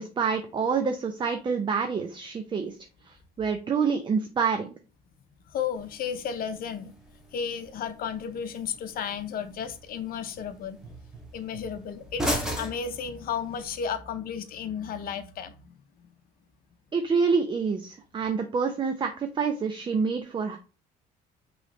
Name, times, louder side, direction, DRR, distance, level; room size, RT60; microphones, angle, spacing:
voice 1, 0.0-2.7 3.1-4.7 16.9-20.6, right 5 dB, 30° right, 0.6 m, -27 dB
voice 2, 5.5-6.9 7.3-10.8 11.3-15.8, left 7 dB, 60° left, 0.8 m, -33 dB
sound 1, 5.8-13.8, equal, 5° right, 1.4 m, -38 dB
5.4 x 3.2 x 3.1 m
cardioid pair, 110°, 17 cm